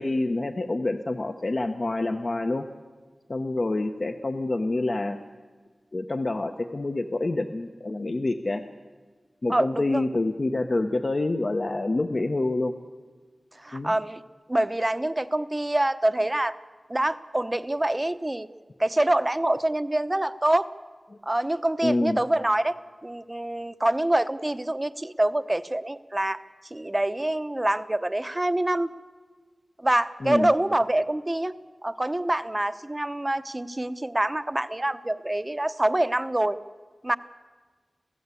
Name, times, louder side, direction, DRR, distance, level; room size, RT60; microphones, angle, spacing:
voice 1, 0.0-2.7 3.3-5.2 5.9-8.6 9.4-12.7 13.7-13.9 21.1-21.2 21.8-22.2 30.2-30.5, left 2 dB, 50° left, 5 dB, 1.0 m, -27 dB
voice 2, 9.5-10.0 13.6-14.2 14.5-16.6 16.9-18.5 18.8-20.7 21.3-22.8 23.0-26.4 26.7-28.9 29.8-31.5 31.8-36.6 37.0-37.2, right 1 dB, 20° right, 12 dB, 0.8 m, -25 dB
27.5 x 15.5 x 8.4 m, 1.5 s
wide cardioid pair, 85°, 0 cm